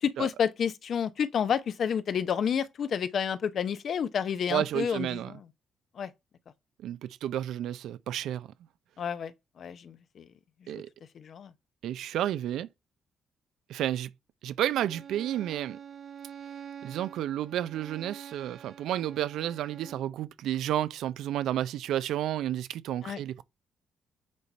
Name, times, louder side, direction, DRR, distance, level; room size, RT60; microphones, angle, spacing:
voice 1, 0.0-5.4 6.0-6.1 9.0-10.3 10.6-10.8 11.1-11.5 23.0-23.2, left 7 dB, 60° left, 0.8 m, -30 dB
voice 2, 4.5-5.3 6.8-8.5 10.7-10.9 11.8-12.7 13.7-14.1 14.4-15.8 16.8-23.4, right 12 dB, 80° right, 0.5 m, -31 dB
Bowed string instrument, 14.7-20.1, right 8 dB, 55° right, 1.0 m, -46 dB
8.5 x 4.1 x 4.4 m
cardioid pair, 90°, 0 cm